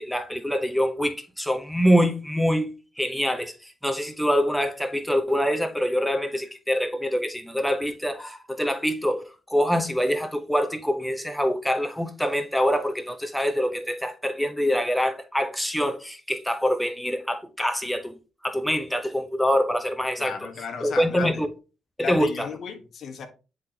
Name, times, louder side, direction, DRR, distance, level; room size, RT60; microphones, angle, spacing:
voice 1, 0.0-2.7 3.0-18.1 18.4-20.5 20.8-21.5 22.0-22.5, equal, ahead, 0.8 m, -25 dB
voice 2, 20.2-21.4 22.0-23.3, left 6 dB, 60° left, 1.2 m, -35 dB
9.5 x 3.8 x 2.7 m
cardioid pair, 90°, 0 cm